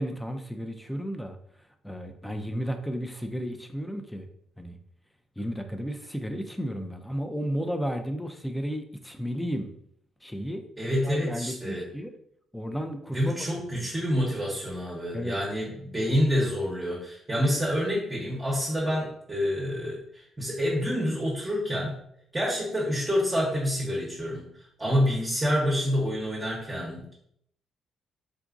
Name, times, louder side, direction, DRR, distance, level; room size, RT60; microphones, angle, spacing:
voice 1, 0.0-1.4 1.8-4.3 4.6-4.8 5.4-9.7 10.2-10.6 11.0-12.1 12.5-13.5 13.7-13.9 15.1-15.4, equal, 5° left, 6 dB, 0.4 m, -33 dB
voice 2, 10.8-11.9 13.1-22.0 22.3-24.5 24.8-27.1, equal, 15° right, -6 dB, 0.9 m, -27 dB
3.8 x 2.4 x 2.4 m, 0.70 s
cardioid pair, 90°, 0 cm